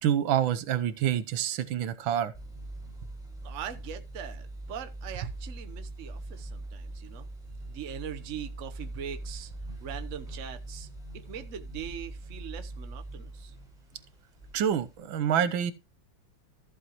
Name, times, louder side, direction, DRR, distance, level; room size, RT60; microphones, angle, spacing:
voice 1, 0.0-2.3 14.5-15.7, right 9 dB, 85° right, 1.6 m, -27 dB
sound 1, 2.3-15.0, right 2 dB, ahead, 5.2 m, -42 dB
voice 2, 3.4-7.3 7.7-9.5 9.8-10.9 11.1-13.6, right 8 dB, 50° right, 1.1 m, -41 dB
14.0 x 7.5 x 3.0 m
omnidirectional pair, 2.1 m